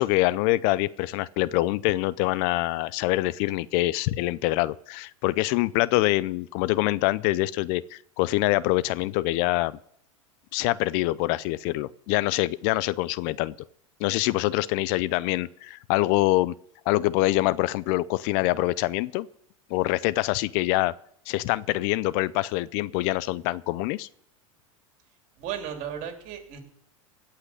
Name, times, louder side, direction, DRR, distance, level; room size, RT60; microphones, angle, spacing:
voice 1, 0.0-9.8 10.5-13.5 14.0-16.5 16.9-19.3 19.7-20.9 21.3-24.1, left 18 dB, 55° left, 19 dB, 0.5 m, -25 dB
voice 2, 25.4-26.6, right 9 dB, 50° right, 4 dB, 3.2 m, -35 dB
17.0 x 5.8 x 9.8 m, 0.69 s
hypercardioid pair, 100°, 17 cm